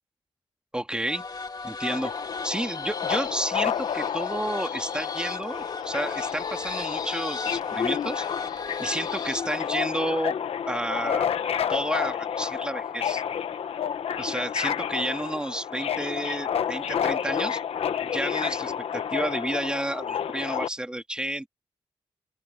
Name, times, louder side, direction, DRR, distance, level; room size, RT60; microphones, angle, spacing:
voice 1, 0.7-1.2 1.6-2.1 2.4-8.3 8.5-10.3 10.7-11.3 11.7-13.2 14.2-17.6 18.1-21.5, right 1 dB, 10° right, 2.1 m, -31 dB
sound 1, 1.1-9.8, left 4 dB, 45° left, 2.4 m, -36 dB
Subway metro underground, 1.9-20.7, left 8 dB, 85° left, 1.2 m, -30 dB
open air
cardioid pair, 95°, 10 cm